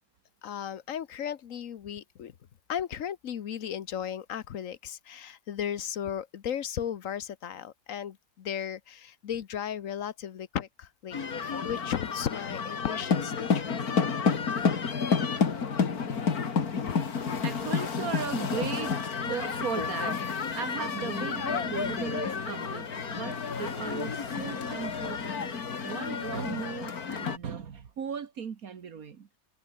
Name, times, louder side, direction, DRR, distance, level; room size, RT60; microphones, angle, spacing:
voice 1, 0.4-2.3 2.7-13.8 16.9-17.0, left 9 dB, 65° left, 1.3 m, -35 dB
sound 1, 11.1-27.4, left 5 dB, 80° left, 2.5 m, -30 dB
voice 2, 17.4-20.2 20.5-29.3, right 6 dB, 75° right, 1.9 m, -37 dB
omnidirectional pair, 1.6 m